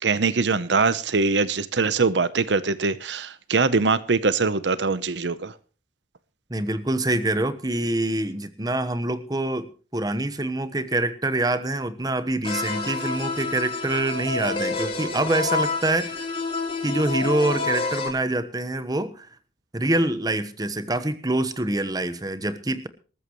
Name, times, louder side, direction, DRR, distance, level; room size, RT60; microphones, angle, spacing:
voice 1, 0.0-5.5, right 4 dB, 80° right, 0.8 m, -22 dB
voice 2, 6.5-16.2 16.8-19.3 19.7-22.9, right 2 dB, 20° right, 1.1 m, -25 dB
sound 1, 12.4-18.1, left 3 dB, 30° left, 3.6 m, -28 dB
19.5 x 14.0 x 3.1 m
head